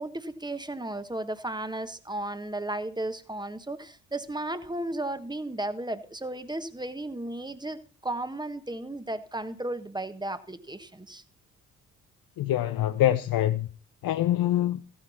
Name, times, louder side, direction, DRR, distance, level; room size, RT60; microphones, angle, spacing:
voice 1, 0.0-11.2, right 1 dB, 10° right, 1.4 m, -34 dB
voice 2, 12.4-13.7 14.0-14.8, left 13 dB, 55° left, 0.7 m, -25 dB
15.0 x 9.8 x 4.2 m
hypercardioid pair, 45°, 40 cm